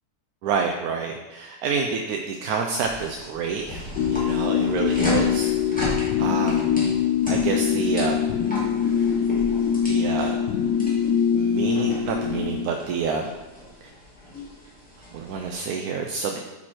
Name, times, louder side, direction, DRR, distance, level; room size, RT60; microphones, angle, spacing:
voice 1, 0.4-6.7 7.3-8.2 9.9-10.4 11.3-13.3 15.1-16.4, right 5 dB, 70° right, 2 dB, 1.0 m, -28 dB
sound 1, 2.8-15.5, equal, 5° left, 2.0 m, -35 dB
sound 2, 4.0-12.7, left 8 dB, 80° left, 1.2 m, -23 dB
8.7 x 4.3 x 4.5 m, 1.2 s
omnidirectional pair, 1.8 m